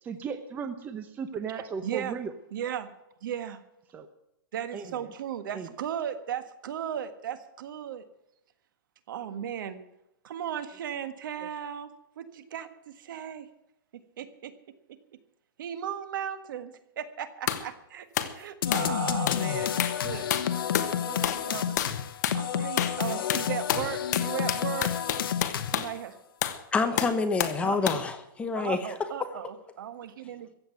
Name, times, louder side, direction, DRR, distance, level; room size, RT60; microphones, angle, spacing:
voice 1, 0.0-2.3 3.9-4.1 4.7-5.1 5.5-5.7 11.4-11.5, right 6 dB, 15° right, 9 dB, 0.8 m, -36 dB
voice 2, 1.8-2.2 2.5-2.9 3.2-3.6 4.5-8.0 9.1-9.8 10.2-11.9 12.2-13.5 14.2-14.5 15.6-18.1 18.3-20.3 21.1-21.8 22.3-24.9 25.6-26.2 27.6-27.8 28.5-30.5, right 9 dB, 65° right, 11 dB, 1.6 m, -36 dB
sound 1, 17.5-17.7 18.2-18.4 18.7-19.0 19.3-19.5 19.8-20.0 20.3-20.9 21.2-21.5 21.8-22.0 22.2-22.4 22.8-23.0 23.3-25.9 26.4-26.6 27.0-27.6 27.9-28.1, left 10 dB, 50° left, 1.4 m, -29 dB
sound 2, 18.6-26.0, left 9 dB, 75° left, 1.0 m, -30 dB
voice 3, 26.7-28.8, left 4 dB, 10° left, 8 dB, 1.0 m, -27 dB
15.0 x 8.0 x 9.1 m, 0.86 s
hypercardioid pair, 160°, 12 cm